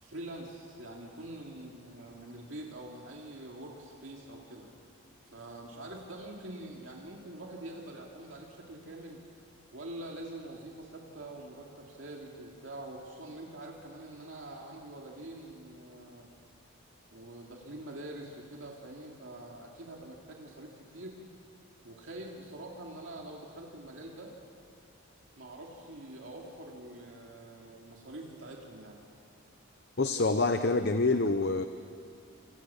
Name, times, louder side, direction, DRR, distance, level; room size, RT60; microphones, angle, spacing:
voice 1, 0.0-4.7 5.3-9.2 9.7-16.3 17.1-21.2 21.8-24.3 25.4-29.0, right 1 dB, 60° right, -1 dB, 2.9 m, -45 dB
voice 2, 30.0-31.7, left 3 dB, 50° left, 9 dB, 0.8 m, -26 dB
29.5 x 27.0 x 7.3 m, 2.5 s
head